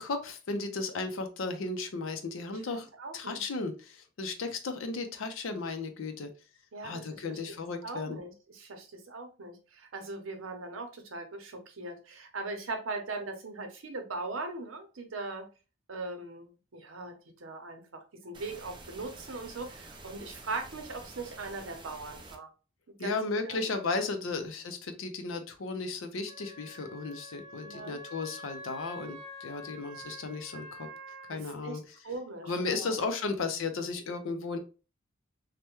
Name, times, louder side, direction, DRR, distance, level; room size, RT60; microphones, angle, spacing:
voice 1, 0.0-6.3 6.8-8.2 23.0-30.9 31.3-32.0 32.4-34.6, left 3 dB, 85° left, 6 dB, 0.5 m, -35 dB
voice 2, 3.0-3.4 6.7-7.6 7.8-15.5 15.9-22.5 23.0-23.2 23.4-23.7 24.2-24.4 27.6-28.0 31.3-33.0 33.2-33.3, right 3 dB, 85° right, 5 dB, 0.7 m, -40 dB
sound 1, 18.3-22.4, right 2 dB, 25° right, 0.4 m, -49 dB
Wind instrument woodwind instrument, 26.3-31.4, equal, 20° left, 0.9 m, -47 dB
3.3 x 2.1 x 2.9 m, 0.33 s
head